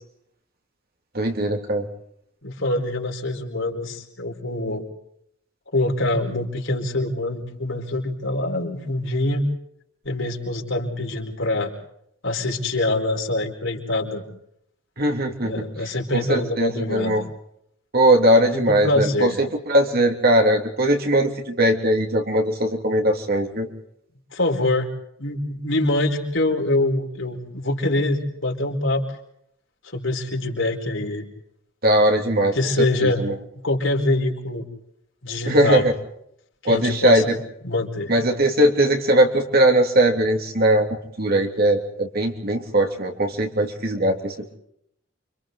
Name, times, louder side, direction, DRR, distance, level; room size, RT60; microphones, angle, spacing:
voice 1, 1.1-1.9 15.0-15.6 16.1-17.2 17.9-23.7 31.8-32.6 33.0-33.3 35.5-35.9 36.6-37.3 38.1-44.3, right 1 dB, 45° right, 3 dB, 3.2 m, -20 dB
voice 2, 2.4-4.8 5.7-9.4 10.0-11.7 12.2-14.2 15.4-17.2 18.5-19.4 24.3-24.9 25.2-29.0 29.9-31.3 32.5-33.2 33.6-34.7 35.2-35.9 36.6-37.3 37.6-38.1, left 2 dB, 65° left, 1 dB, 4.8 m, -24 dB
29.5 x 26.5 x 4.0 m, 0.74 s
head